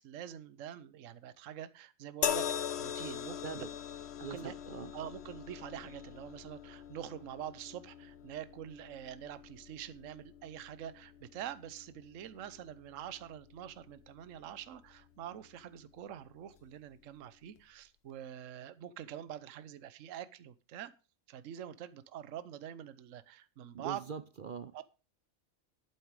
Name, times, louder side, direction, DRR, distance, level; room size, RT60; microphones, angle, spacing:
voice 1, 0.0-3.6 4.3-4.5 4.9-20.9 21.3-24.0 24.7-24.8, right 10 dB, 65° right, 1.1 m, -45 dB
sound 1, 2.2-15.6 16.5-16.7, left 9 dB, 55° left, 0.9 m, -42 dB
voice 2, 4.2-4.9 23.7-24.8, right 6 dB, 50° right, 0.6 m, -43 dB
11.5 x 8.9 x 4.8 m
omnidirectional pair, 1.5 m